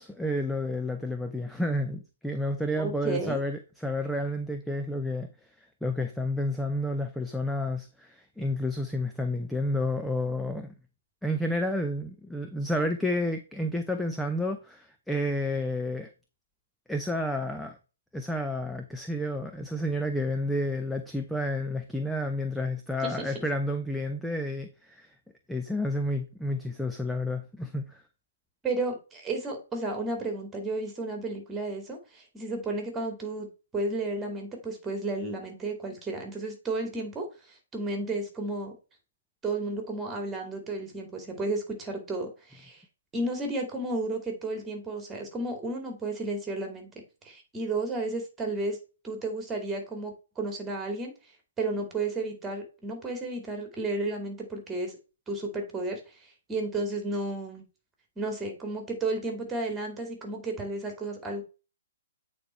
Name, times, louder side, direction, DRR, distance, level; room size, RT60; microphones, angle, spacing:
voice 1, 0.0-5.3 5.8-10.7 11.2-16.1 16.9-17.8 18.1-25.1 25.5-28.0, left 1 dB, ahead, 0.6 m, -30 dB
voice 2, 2.8-3.4 23.0-23.3 28.6-33.5 33.7-37.3 37.7-38.7 39.4-42.8 43.1-48.8 49.0-51.1 51.6-54.9 55.3-56.0 56.5-57.6 58.2-61.4, right 2 dB, 15° right, 2.5 m, -32 dB
8.5 x 4.3 x 4.4 m
figure-of-eight pair, 130°, 0 cm